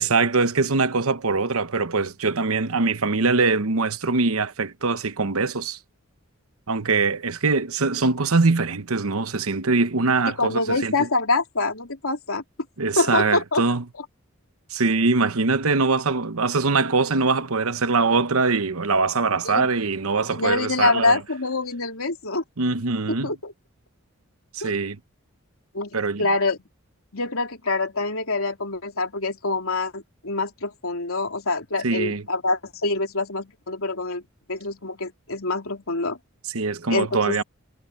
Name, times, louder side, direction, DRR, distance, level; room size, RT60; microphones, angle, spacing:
voice 1, 0.0-5.8 6.7-10.9 12.8-13.8 14.7-21.2 22.6-23.3 24.5-25.0 25.9-26.2 31.8-32.2 36.5-37.4, right 4 dB, 85° right, 1.0 m, -22 dB
voice 2, 10.3-12.4 13.0-13.6 14.0-14.1 19.4-19.7 20.2-22.4 23.2-23.5 24.6-24.8 25.7-26.6 27.1-34.2 34.5-36.2 36.9-37.4, left 3 dB, 80° left, 3.3 m, -25 dB
head